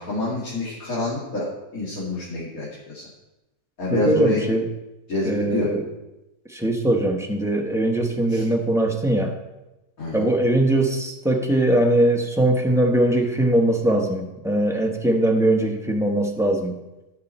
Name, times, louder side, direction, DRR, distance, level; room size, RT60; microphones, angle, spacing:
voice 1, 0.0-1.5 1.7-3.0 3.8-4.4 5.1-5.7 8.3-8.4 10.0-10.3, left 2 dB, 60° left, -7 dB, 2.8 m, -27 dB
voice 2, 3.9-4.6 5.2-5.8 6.5-9.3 10.1-16.7, right 1 dB, ahead, 2 dB, 0.9 m, -21 dB
15.0 x 6.2 x 4.3 m, 0.99 s
omnidirectional pair, 1.7 m